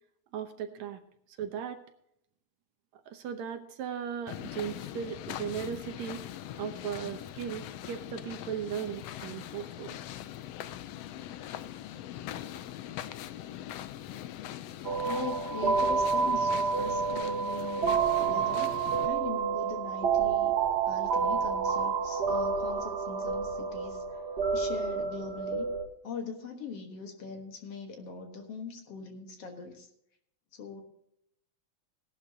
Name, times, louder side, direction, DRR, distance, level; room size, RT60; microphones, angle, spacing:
voice 1, 0.3-1.0 1.4-1.8 3.1-6.2 6.6-10.0, right 8 dB, 70° right, 7 dB, 2.1 m, -37 dB
sound 1, 4.3-19.1, left 12 dB, 75° left, 1.5 m, -42 dB
sound 2, 14.8-25.9, right 6 dB, 45° right, 1.4 m, -29 dB
voice 2, 15.0-18.7 19.0-20.5 20.9-24.2 24.5-25.7 26.0-29.9 30.5-30.8, left 5 dB, 55° left, 4 dB, 2.3 m, -41 dB
17.0 x 11.5 x 2.8 m, 0.73 s
omnidirectional pair, 3.5 m